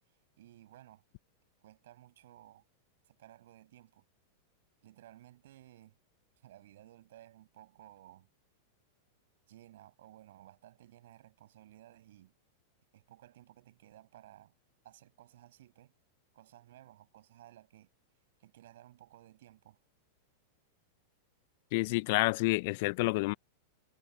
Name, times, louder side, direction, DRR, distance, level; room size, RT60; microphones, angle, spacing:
voice 1, 0.4-1.0 1.6-2.6 3.1-4.0 4.8-5.9 6.4-8.3 9.5-12.3 12.9-14.5 14.8-15.9 16.3-17.9 18.4-19.8, right 13 dB, 70° right, 7.2 m, -57 dB
voice 2, 21.7-23.3, left 24 dB, 55° left, 0.3 m, -29 dB
hypercardioid pair, 100°, 0 cm